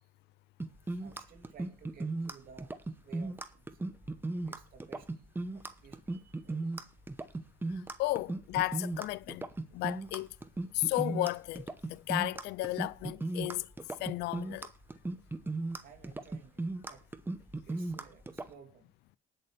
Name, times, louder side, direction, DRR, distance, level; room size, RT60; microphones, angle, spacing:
sound 1, 0.6-18.5, right 2 dB, 10° right, 0.9 m, -37 dB
voice 1, 0.9-2.8 3.0-3.8 4.5-5.1 5.5-6.9 15.8-17.0 17.6-18.8, right 6 dB, 60° right, 2.7 m, -56 dB
voice 2, 8.0-9.5 9.7-10.3 10.7-13.7 14.0-14.7, left 18 dB, 80° left, 0.5 m, -33 dB
19.0 x 6.8 x 3.4 m
cardioid pair, 110°, 17 cm